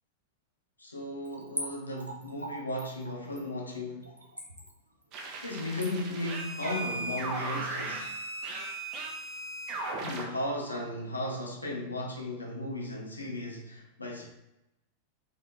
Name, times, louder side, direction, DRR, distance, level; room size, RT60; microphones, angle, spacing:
voice 1, 0.8-4.1 5.4-8.1 10.0-14.2, left 1 dB, 80° left, -1 dB, 1.0 m, -35 dB
Splash splatter / Trickle dribble, 1.2-7.7 8.0-8.1, right 1 dB, 85° right, 0.8 m, -42 dB
sound 1, 5.1-10.2, right 2 dB, 35° right, 0.9 m, -37 dB
4.0 x 3.9 x 3.4 m, 0.88 s
figure-of-eight pair, 90°, 0 cm